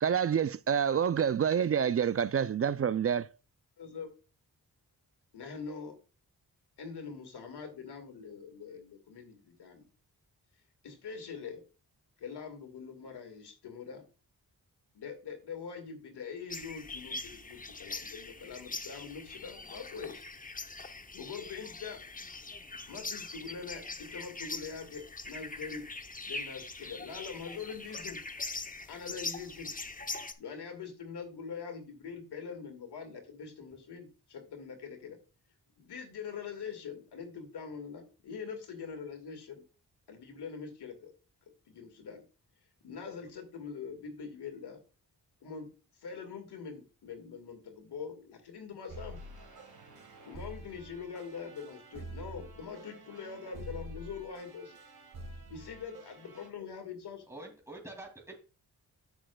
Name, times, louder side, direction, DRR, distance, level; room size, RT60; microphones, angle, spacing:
voice 1, 0.0-3.3, right 8 dB, 40° right, 0.4 m, -27 dB
voice 2, 3.8-4.1 5.3-6.0 6.8-9.9 10.8-11.6 12.2-14.1 14.9-20.2 20.7-20.8 21.1-22.0 22.9-25.9 26.2-28.2 28.9-29.7 30.4-35.2 35.8-39.6 40.1-41.1 41.7-42.2 42.8-44.8 45.4-45.7 46.0-49.2 50.2-54.7 55.5-57.2, left 6 dB, 90° left, 2.1 m, -43 dB
sound 1, 16.5-30.3, left 3 dB, 20° left, 0.8 m, -42 dB
sound 2, 48.9-56.5, right 1 dB, 70° right, 2.3 m, -47 dB
voice 3, 57.3-58.4, right 2 dB, 5° right, 2.6 m, -46 dB
14.0 x 6.2 x 2.3 m
cardioid pair, 55°, 39 cm